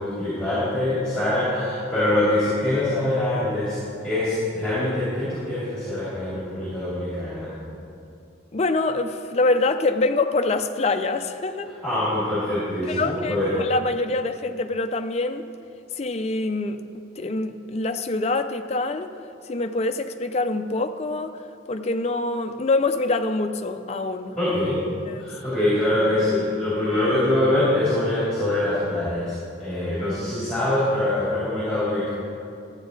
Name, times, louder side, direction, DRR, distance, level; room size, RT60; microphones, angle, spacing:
voice 1, 0.0-3.8 4.0-7.5 11.8-13.5 24.3-24.8 25.2-32.1, left 1 dB, 5° left, -12 dB, 3.0 m, -24 dB
voice 2, 8.5-11.7 12.8-15.5 15.9-19.1 19.4-24.4 25.1-25.3, left 2 dB, 35° left, 7 dB, 0.4 m, -25 dB
13.0 x 8.8 x 4.0 m, 2.6 s
head